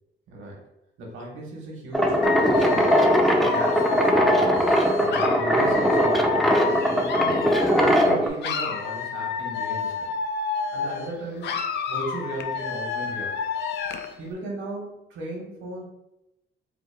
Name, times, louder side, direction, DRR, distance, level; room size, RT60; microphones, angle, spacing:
voice 1, 0.3-0.6 1.0-3.1 3.3-10.1 10.7-11.6 11.9-13.3 14.2-15.8, right 1 dB, 85° right, -2 dB, 0.9 m, -36 dB
sound 1, 1.9-8.3, equal, ahead, 0.4 m, -20 dB
Dog / Alarm, 2.2-8.1 8.4-11.1 11.4-14.1, left 6 dB, 60° left, 0.4 m, -29 dB
3.5 x 2.1 x 3.2 m, 0.89 s
cardioid pair, 90°, 20 cm